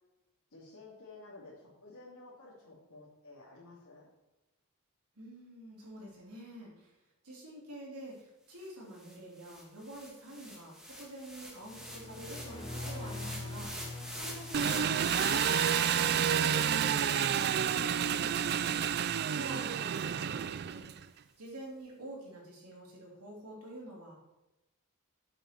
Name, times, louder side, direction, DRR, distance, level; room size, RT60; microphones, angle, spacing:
voice 1, 0.5-4.1, left 2 dB, 80° left, -8 dB, 2.8 m, -52 dB
voice 2, 5.1-7.0 7.2-13.7 14.2-14.8 15.1-18.5 19.3-21.1 21.4-24.2, right 1 dB, 85° right, -3 dB, 3.4 m, -47 dB
sound 1, 8.6-8.7 9.0-19.3, equal, ahead, 1.6 m, -44 dB
sound 2, 11.7-15.5, left 2 dB, 25° left, 0.9 m, -43 dB
Engine, 14.5-21.0, right 8 dB, 45° right, 0.3 m, -30 dB
8.1 x 7.9 x 4.6 m, 0.98 s
head